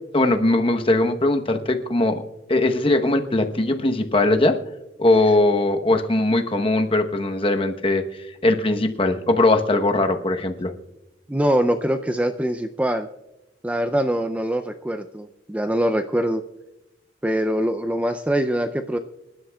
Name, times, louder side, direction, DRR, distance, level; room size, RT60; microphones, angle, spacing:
voice 1, 0.1-2.2 2.5-4.6 5.0-8.0 8.4-10.7, left 2 dB, 30° left, 6 dB, 0.9 m, -20 dB
voice 2, 11.3-13.1 13.6-16.4 17.2-19.0, right 1 dB, 10° right, 8 dB, 0.4 m, -23 dB
26.5 x 11.5 x 2.3 m, 0.96 s
head